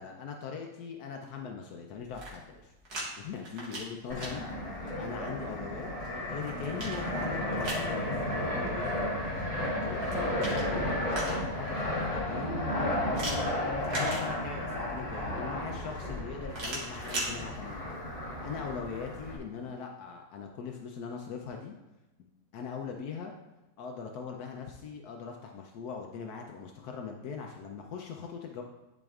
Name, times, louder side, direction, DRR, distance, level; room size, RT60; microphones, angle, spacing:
voice 1, 0.0-4.5 4.7-9.1 9.8-17.8 18.4-21.7 22.2-23.3 23.8-28.6, left 5 dB, 80° left, 2 dB, 1.2 m, -41 dB
sound 1, 2.0-3.1 3.4-4.3 6.0-7.9 9.9-11.6 13.1-14.7 16.5-17.3, right 1 dB, 85° right, 2.2 m, -39 dB
Fixed-wing aircraft airplane, 4.1-19.4, left 1 dB, 25° left, 1.5 m, -33 dB
11.0 x 5.2 x 2.4 m, 1.0 s
omnidirectional pair, 1.6 m